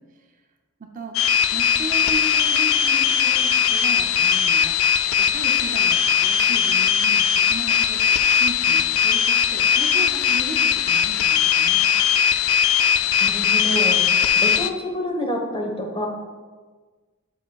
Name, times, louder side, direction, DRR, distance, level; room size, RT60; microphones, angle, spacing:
voice 1, 0.8-1.2 1.5-8.1 8.3-11.9, right 3 dB, 40° right, 3 dB, 0.5 m, -36 dB
sound 1, 1.1-14.7, left 7 dB, 90° left, 0.3 m, -19 dB
voice 2, 13.2-16.1, equal, 25° left, 1 dB, 1.1 m, -28 dB
7.3 x 6.8 x 2.3 m, 1.4 s
head